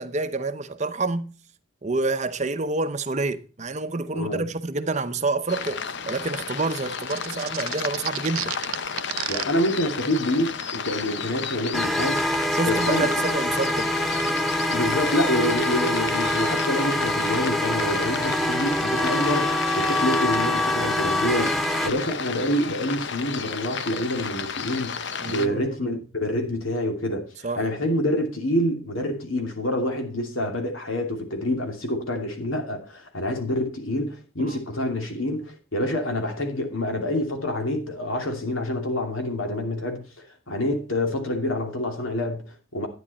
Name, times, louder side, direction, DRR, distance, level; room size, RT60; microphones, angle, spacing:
voice 1, 0.0-1.3 1.8-8.6 12.5-14.0 21.8-22.0 25.2-25.9 27.4-27.6 34.4-34.6, right 3 dB, 35° right, 0.7 m, -28 dB
voice 2, 4.1-4.4 9.3-12.2 12.7-13.1 14.7-27.3 27.6-42.9, left 1 dB, 75° left, 2.7 m, -27 dB
sound 1, 5.5-25.5, left 6 dB, 55° left, 0.7 m, -33 dB
sound 2, 7.1-9.4, right 13 dB, 85° right, 0.7 m, -30 dB
sound 3, 11.7-21.9, left 1 dB, ahead, 0.4 m, -25 dB
11.5 x 9.6 x 4.2 m
head